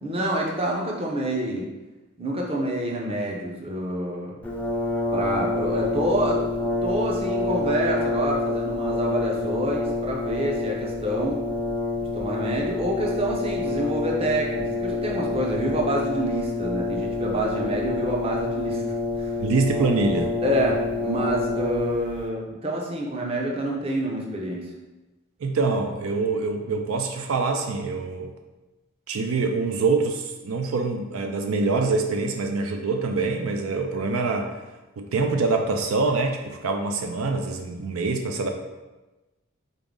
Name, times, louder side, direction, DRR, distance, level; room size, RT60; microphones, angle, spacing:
voice 1, 0.0-1.7 2.2-4.4 5.1-11.4 12.0-18.8 19.2-19.3 20.4-24.7, right 1 dB, 25° right, -2 dB, 0.7 m, -27 dB
Brass instrument, 4.4-22.2, left 2 dB, 5° left, 0.4 m, -27 dB
voice 2, 19.4-20.3 25.4-28.3 29.1-34.5 35.0-38.5, right 3 dB, 80° right, 4 dB, 0.4 m, -25 dB
3.9 x 3.7 x 3.7 m, 1.1 s
head